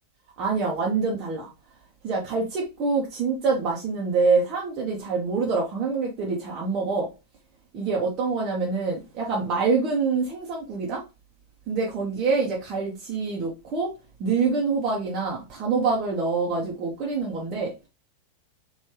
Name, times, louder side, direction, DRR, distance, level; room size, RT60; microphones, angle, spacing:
voice 1, 0.4-1.5 2.0-7.1 7.7-11.0 11.7-17.7, right 4 dB, 35° right, 0.9 m, -26 dB
3.3 x 2.6 x 2.9 m
figure-of-eight pair, 90°, 0 cm